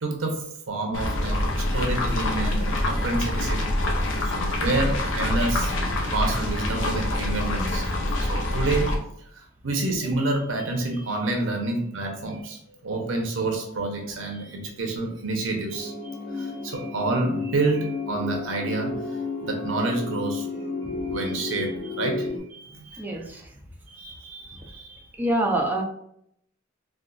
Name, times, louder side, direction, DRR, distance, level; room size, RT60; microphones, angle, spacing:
voice 1, 0.0-3.6 4.2-5.7 6.1-7.9 8.2-8.9 9.3-20.7 21.0-23.3 23.9-25.0, right 2 dB, 70° right, 2 dB, 0.6 m, -29 dB
sound 1, 0.9-8.9, left 1 dB, 70° left, 0.6 m, -25 dB
sound 2, 15.7-22.4, left 3 dB, 45° left, 1.1 m, -32 dB
voice 2, 23.0-23.4 25.2-25.8, right 1 dB, 10° right, 0 dB, 0.4 m, -25 dB
3.7 x 2.4 x 2.3 m, 0.71 s
head